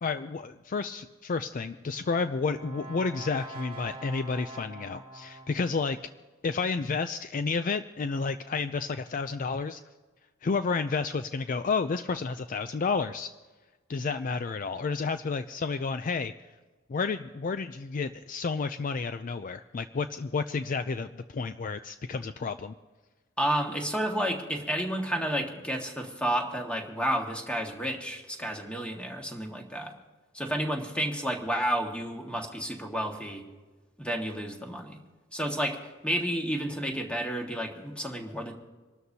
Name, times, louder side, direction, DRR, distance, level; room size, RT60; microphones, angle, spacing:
voice 1, 0.0-6.0 6.4-9.8 10.4-13.3 13.9-16.3 16.9-22.7, left 4 dB, 45° left, 10 dB, 0.4 m, -31 dB
Brass instrument, 1.8-5.8, right 1 dB, 25° right, 1.5 m, -45 dB
voice 2, 23.4-29.9 30.3-33.4 34.0-35.0 35.3-35.8 36.0-38.5, equal, 5° left, 1 dB, 1.7 m, -31 dB
27.0 x 12.5 x 2.8 m, 1.3 s
head